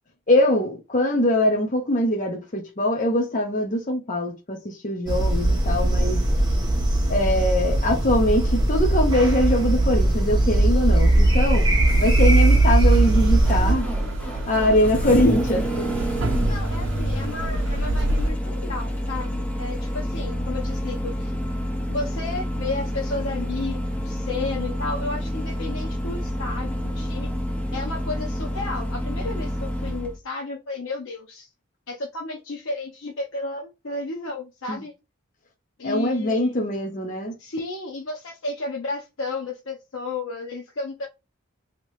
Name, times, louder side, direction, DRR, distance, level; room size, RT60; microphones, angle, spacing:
voice 1, 0.3-6.2 7.1-11.7 12.0-13.9 14.5-15.7 34.7-34.8 35.8-37.3, left 1 dB, 35° left, 0.7 m, -22 dB
sound 1, 5.1-13.7, right 1 dB, 20° right, 0.9 m, -19 dB
Engine starting, 11.8-30.2, equal, 5° left, 0.5 m, -29 dB
sound 2, 11.9-18.3, right 1 dB, 65° right, 0.6 m, -27 dB
voice 2, 16.3-21.3 21.9-27.3 27.7-31.5 31.9-34.9 35.8-36.5 37.4-41.1, left 3 dB, 65° left, 0.7 m, -33 dB
2.9 x 2.9 x 3.1 m
head